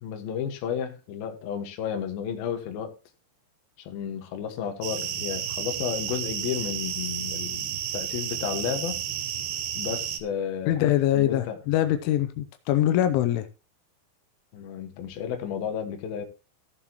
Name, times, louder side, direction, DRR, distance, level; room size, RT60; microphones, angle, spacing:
voice 1, 0.0-2.9 3.8-9.0 9.7-11.6 14.5-16.3, left 8 dB, 65° left, 2.9 m, -32 dB
sound 1, 4.8-10.2, right 9 dB, 70° right, 2.6 m, -32 dB
voice 2, 10.7-13.4, left 12 dB, 85° left, 3.1 m, -23 dB
16.0 x 7.4 x 2.9 m
omnidirectional pair, 5.5 m